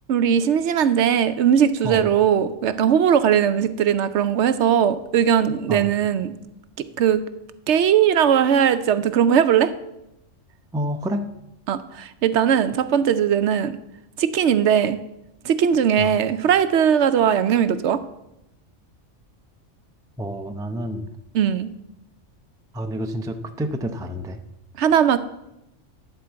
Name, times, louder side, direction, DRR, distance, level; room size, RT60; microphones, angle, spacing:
voice 1, 0.1-6.3 7.0-7.2 7.7-9.7 11.7-13.8 14.2-15.0 15.4-18.0 21.3-21.7 24.8-25.2, right 8 dB, 70° right, 12 dB, 0.9 m, -19 dB
voice 2, 10.7-11.2 16.0-16.1 20.2-21.1 22.7-24.4, equal, 5° right, 7 dB, 0.4 m, -28 dB
11.5 x 4.4 x 7.9 m, 0.88 s
omnidirectional pair, 1.3 m